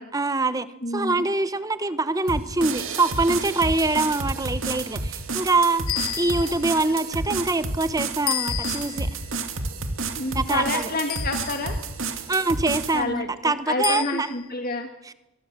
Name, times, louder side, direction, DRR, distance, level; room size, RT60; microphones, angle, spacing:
voice 1, 0.1-0.7 0.9-9.1 10.3-10.8 12.3-14.3 15.1-15.2, right 3 dB, 15° right, 13 dB, 0.9 m, -24 dB
voice 2, 0.8-1.2 10.2-11.8 12.9-14.9, left 2 dB, 45° left, 5 dB, 1.8 m, -29 dB
sound 1, 2.3-13.0, right 3 dB, 70° right, 2.7 m, -30 dB
sound 2, 3.7-3.8 4.5-5.0 6.2-6.5 6.8-7.2 7.9-8.4 8.8-8.9, right 5 dB, 85° right, 3.3 m, -46 dB
sound 3, 5.9-6.8 8.3-9.1 11.1-11.8 13.8-14.5, left 15 dB, 80° left, 1.0 m, -31 dB
24.0 x 22.0 x 7.5 m, 0.97 s
head